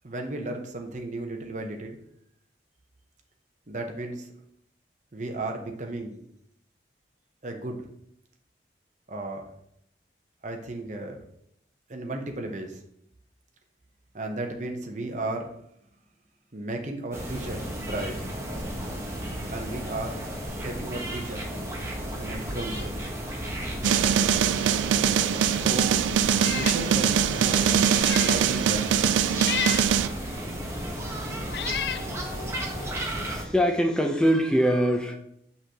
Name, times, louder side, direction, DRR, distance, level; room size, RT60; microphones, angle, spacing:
voice 1, 0.0-2.0 3.7-4.3 5.1-6.2 7.4-7.8 9.1-9.5 10.4-11.2 11.9-12.8 14.1-15.5 16.5-18.3 19.5-20.2 20.5-21.5 22.2-23.0 25.5-26.1 26.5-29.2, right 2 dB, 40° right, 3 dB, 0.8 m, -35 dB
sound 1, 17.1-33.4, right 1 dB, 15° right, 1.0 m, -34 dB
sound 2, 23.8-30.1, right 8 dB, 85° right, 0.3 m, -23 dB
Meow, 26.3-26.8 27.3-27.4 27.9-28.4 29.4-29.9 30.8-30.9 31.5-32.1, left 8 dB, 60° left, 0.3 m, -31 dB
voice 2, 33.2-35.1, equal, 5° left, 3 dB, 0.6 m, -23 dB
6.3 x 5.7 x 2.9 m, 0.72 s
head